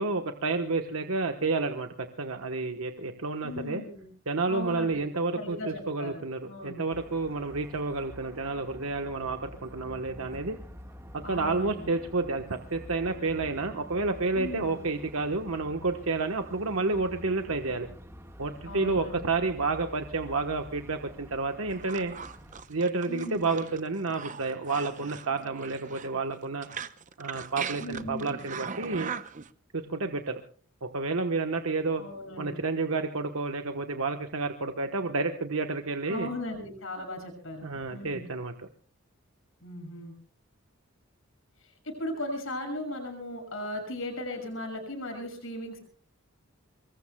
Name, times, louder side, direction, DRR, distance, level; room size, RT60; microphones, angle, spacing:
voice 1, 0.0-1.9 2.2-3.8 4.3-10.6 11.1-17.9 18.4-22.1 22.7-26.7 27.2-29.1 29.7-30.4 30.8-32.0 32.4-36.3 37.6-38.7, right 3 dB, 80° right, 5 dB, 1.2 m, -30 dB
voice 2, 3.4-4.0 4.5-5.0 5.3-6.2 6.5-6.9 11.2-11.9 14.3-14.7 18.6-19.3 23.1-23.4 27.8-28.3 32.0-32.6 36.1-38.3 39.6-40.1 41.8-45.8, left 1 dB, 70° left, 4 dB, 6.4 m, -37 dB
sound 1, 6.9-22.6, equal, 15° right, 1.6 m, -47 dB
sound 2, 21.7-29.5, right 6 dB, 35° right, 0.7 m, -40 dB
25.5 x 22.0 x 2.3 m, 0.43 s
head